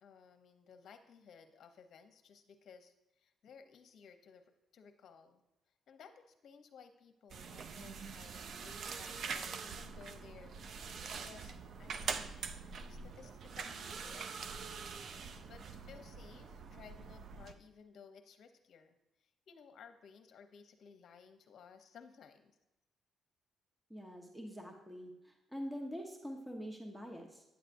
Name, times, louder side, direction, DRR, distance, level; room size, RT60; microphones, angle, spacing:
voice 1, 0.0-5.4 5.9-12.3 12.9-14.5 15.5-22.6, left 6 dB, 65° left, 7 dB, 0.8 m, -58 dB
sound 1, 7.3-17.5, right 5 dB, 60° right, 0.4 m, -44 dB
voice 2, 23.9-27.4, equal, 10° right, 2 dB, 1.0 m, -45 dB
9.3 x 7.9 x 2.6 m, 0.95 s
cardioid pair, 90°, 0 cm